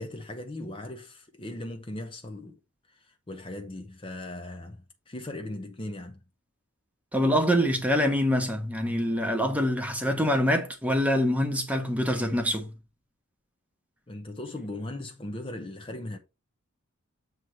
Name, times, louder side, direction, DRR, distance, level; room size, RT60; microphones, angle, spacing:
voice 1, 0.0-2.6 2.9-6.2 14.1-16.2, left 1 dB, 25° left, 0.7 m, -38 dB
voice 2, 7.1-12.7, equal, 5° right, 1.2 m, -25 dB
8.0 x 3.1 x 5.5 m
head